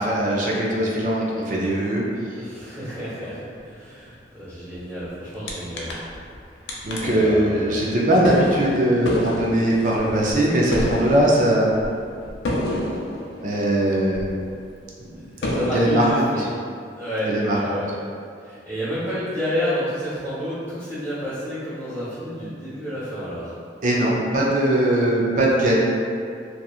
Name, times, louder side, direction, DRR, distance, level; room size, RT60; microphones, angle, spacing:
voice 1, 0.0-2.0 6.8-11.7 13.4-14.3 15.1-15.2 15.7-16.3 17.3-17.8 23.8-25.8, right 1 dB, 45° right, -3 dB, 0.4 m, -20 dB
voice 2, 2.4-5.9 6.6-7.8 13.9-14.0 15.3-16.4 16.9-17.9 18.4-23.5, equal, 5° left, -16 dB, 1.1 m, -30 dB
sound 1, 5.5-5.6 5.8-6.4 6.7-14.6 15.0-15.1 15.4-16.3, left 1 dB, 85° left, 0.4 m, -29 dB
2.7 x 2.3 x 2.3 m, 2.3 s
head